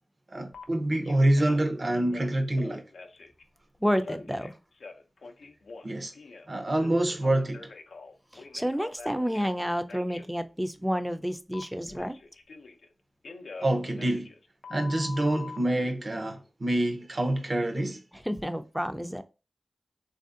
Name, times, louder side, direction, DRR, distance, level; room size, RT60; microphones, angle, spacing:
voice 1, 0.3-2.8 5.8-6.1 6.5-7.7 13.6-14.3 14.7-18.0, right 1 dB, 55° right, 0.7 m, -26 dB
Telephone, 0.5-0.6 1.0-1.7 2.1-3.4 4.0-6.5 6.8-9.5 9.9-10.3 11.5-12.9 13.2-15.6, left 4 dB, 90° left, 0.4 m, -45 dB
voice 2, 3.8-4.6 8.3-12.2 18.1-19.2, equal, 5° right, 0.4 m, -30 dB
3.3 x 2.6 x 2.5 m
cardioid pair, 40°, 0 cm